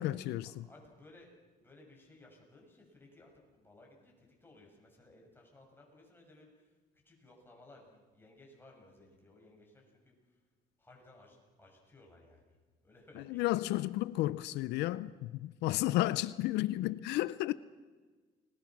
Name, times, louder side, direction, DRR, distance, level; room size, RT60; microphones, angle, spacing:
voice 1, 0.0-0.5 13.3-17.5, left 16 dB, 85° left, 0.6 m, -32 dB
voice 2, 0.6-1.3 1.6-6.7 7.0-10.4 10.8-12.6 12.8-13.5, left 2 dB, 15° left, 6.9 m, -59 dB
29.5 x 20.5 x 6.1 m
cardioid pair, 110°, 17 cm